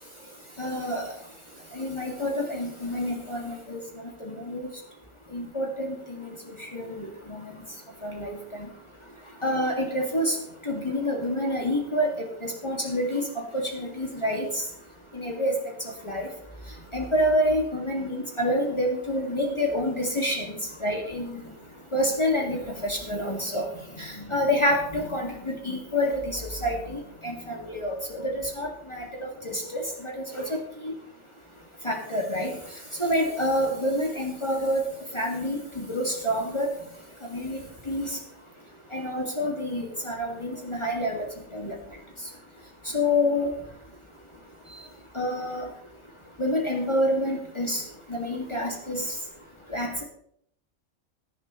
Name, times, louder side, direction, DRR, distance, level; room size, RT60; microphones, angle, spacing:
voice 1, 0.6-1.1 1.7-4.7 5.3-6.3 6.6-7.5 8.0-8.3 8.6-8.7 9.4-10.4 10.7-12.1 12.4-14.6 15.1-15.5 16.0-16.3 16.9-21.3 21.9-23.6 24.0-30.9 31.8-32.5 33.0-34.8 35.1-36.7 37.3-37.6 37.9-38.2 38.9-41.3 41.5-41.7 42.9-43.5 45.1-45.7 46.4-47.8 48.1-49.0 49.7-50.0, left 1 dB, 20° left, 0 dB, 2.2 m, -28 dB
17.0 x 11.0 x 3.1 m, 0.68 s
omnidirectional pair, 1.4 m